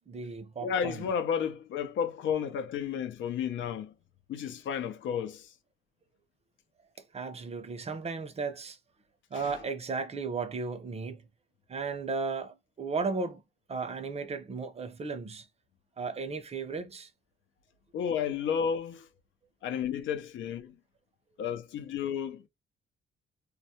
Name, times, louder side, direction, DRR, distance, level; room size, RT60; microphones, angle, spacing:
voice 1, 0.1-1.0 7.1-8.8 9.3-11.2 11.7-13.4 13.7-15.5 16.0-17.1, right 4 dB, 30° right, 0.6 m, -35 dB
voice 2, 0.6-3.9 4.3-5.5 9.3-9.6 17.9-19.1 19.6-20.8 21.4-22.5, left 7 dB, 75° left, 0.6 m, -32 dB
2.3 x 2.0 x 2.8 m
cardioid pair, 90°, 20 cm